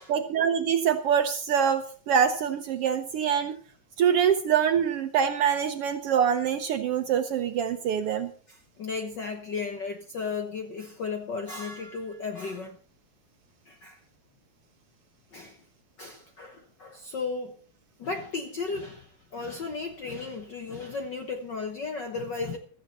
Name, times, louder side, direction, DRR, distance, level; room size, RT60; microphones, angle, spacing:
voice 1, 0.1-3.6 4.0-8.3, right 8 dB, 70° right, 1.5 m, -25 dB
voice 2, 8.5-12.8 13.7-14.0 15.3-15.6 16.0-17.5 18.0-22.6, left 4 dB, 60° left, 1.2 m, -35 dB
15.5 x 13.5 x 4.2 m
omnidirectional pair, 3.4 m